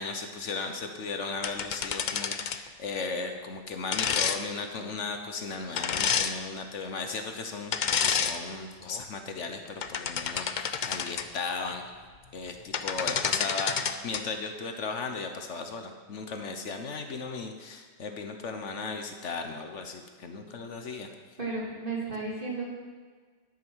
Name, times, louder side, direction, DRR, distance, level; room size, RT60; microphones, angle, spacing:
voice 1, 0.0-11.8 12.3-21.1, left 4 dB, 70° left, 5 dB, 1.3 m, -36 dB
sound 1, 1.4-2.7 3.9-4.4 5.8-6.3 7.7-8.4 8.9-9.0 9.7-11.3 12.5-12.6 12.7-14.2, left 7 dB, 50° left, 0.6 m, -29 dB
voice 2, 21.4-22.6, right 3 dB, 40° right, -5 dB, 3.1 m, -33 dB
10.5 x 9.1 x 6.2 m, 1.5 s
omnidirectional pair, 1.3 m